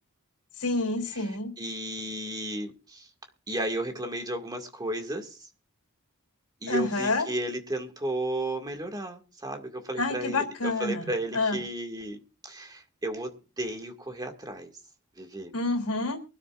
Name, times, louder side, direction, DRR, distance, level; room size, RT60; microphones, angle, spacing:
voice 1, 0.6-1.5 6.7-7.2 10.0-11.6 15.5-16.2, left 2 dB, 80° left, 3.3 m, -28 dB
voice 2, 1.6-3.1 3.5-5.5 6.6-12.2 12.4-14.7 15.2-15.5, right 1 dB, 20° right, 2.0 m, -34 dB
23.5 x 12.5 x 2.5 m
head